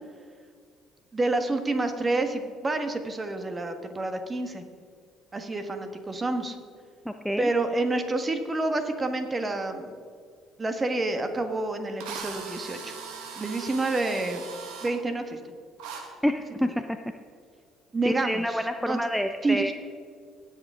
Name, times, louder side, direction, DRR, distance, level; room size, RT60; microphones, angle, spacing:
voice 1, 1.1-4.6 5.3-6.6 7.4-10.0 10.6-13.0 13.4-14.4 14.8-15.4 17.9-19.0 19.4-19.7, right 2 dB, 30° right, 7 dB, 1.5 m, -28 dB
voice 2, 7.1-7.5 16.2-16.7 18.1-19.7, equal, ahead, 7 dB, 0.6 m, -27 dB
Drill, 11.3-11.4 12.0-14.9 15.8-16.0, right 6 dB, 70° right, 1.6 m, -39 dB
18.5 x 6.9 x 3.8 m, 2.1 s
hypercardioid pair, 55°, 0 cm